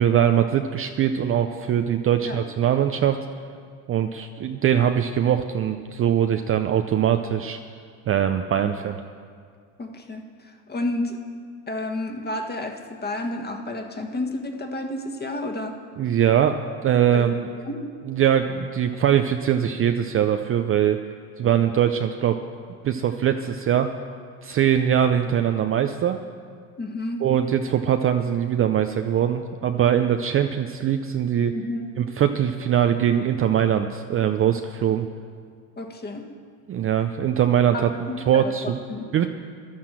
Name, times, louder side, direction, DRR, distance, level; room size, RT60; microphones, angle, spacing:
voice 1, 0.0-3.2 3.9-7.6 8.1-9.0 16.0-17.5 18.1-21.0 21.4-22.4 22.8-23.9 24.4-26.2 27.2-31.5 32.0-35.1 36.7-37.9 38.3-38.8 39.1-39.3, right 9 dB, 30° right, 7 dB, 0.5 m, -22 dB
voice 2, 9.8-11.2 11.7-15.8 17.1-17.3 17.6-17.9 21.4-21.5 26.8-27.3 31.5-31.8 35.8-36.3 37.7-39.1, left 2 dB, 20° left, 5 dB, 1.5 m, -31 dB
11.0 x 10.5 x 7.5 m, 2.1 s
supercardioid pair, 100°, 44 cm